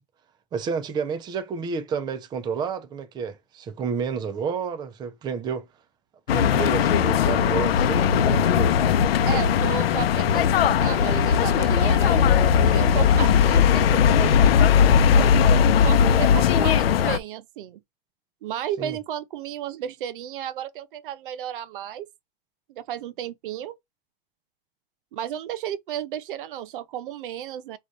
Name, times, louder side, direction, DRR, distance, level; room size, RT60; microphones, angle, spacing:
voice 1, 0.5-5.7 6.3-8.7 18.8-19.0, right 6 dB, 15° right, 0.6 m, -30 dB
sound 1, 6.3-17.2, left 7 dB, 85° left, 0.7 m, -19 dB
voice 2, 9.3-12.3 12.6-14.4 15.1-15.3 15.8-17.8 18.4-22.1 22.7-23.8 25.1-27.8, right 10 dB, 60° right, 0.7 m, -33 dB
4.9 x 2.5 x 4.1 m
supercardioid pair, 150°, 29 cm